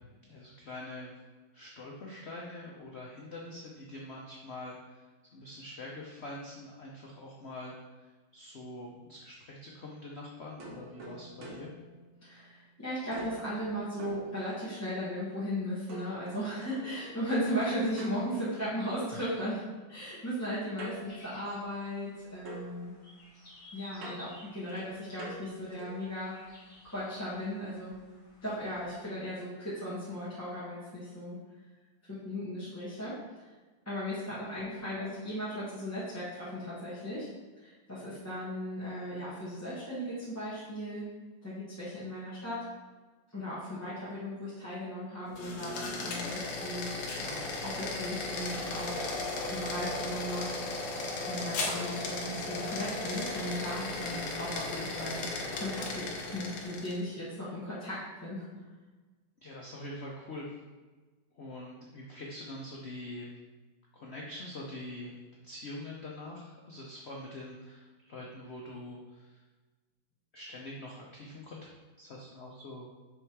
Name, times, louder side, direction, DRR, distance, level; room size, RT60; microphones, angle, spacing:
voice 1, 0.2-1.1 1.5-11.7 59.4-60.5 61.3-63.3 63.9-65.1 65.4-69.4 70.3-71.7 72.0-72.9, left 1 dB, 90° left, -2 dB, 0.5 m, -44 dB
sound 1, 10.6-12.7 13.1-14.9 15.9-19.1 20.8-22.2 22.4-26.1, right 1 dB, 85° right, 1.9 m, -48 dB
voice 2, 12.2-22.9 23.7-26.5 26.9-28.0 28.4-31.4 32.1-33.5 33.8-37.3 37.6-41.0 41.4-42.6 43.3-46.9 47.2-50.8 51.2-55.3 55.5-58.4, equal, 10° left, -11 dB, 1.2 m, -37 dB
sound 2, 21.1-29.0, left 1 dB, 35° left, 1.9 m, -56 dB
sound 3, 45.3-57.0, left 2 dB, 65° left, 1.3 m, -36 dB
6.2 x 3.4 x 4.6 m, 1.3 s
omnidirectional pair, 2.2 m